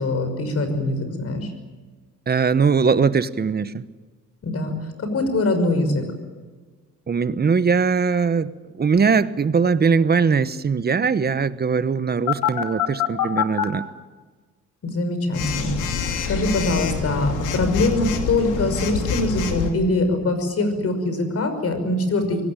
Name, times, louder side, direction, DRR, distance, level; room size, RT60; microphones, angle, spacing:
voice 1, 0.0-1.5 4.4-6.0 14.8-22.4, left 2 dB, 50° left, 8 dB, 5.7 m, -23 dB
voice 2, 2.3-3.8 7.1-8.5 8.8-13.9, right 5 dB, 35° right, 14 dB, 1.1 m, -20 dB
Telephone, 12.3-13.6 15.3-19.7, left 7 dB, 85° left, 2.8 m, -25 dB
24.0 x 18.5 x 9.0 m, 1.4 s
cardioid pair, 90°, 30 cm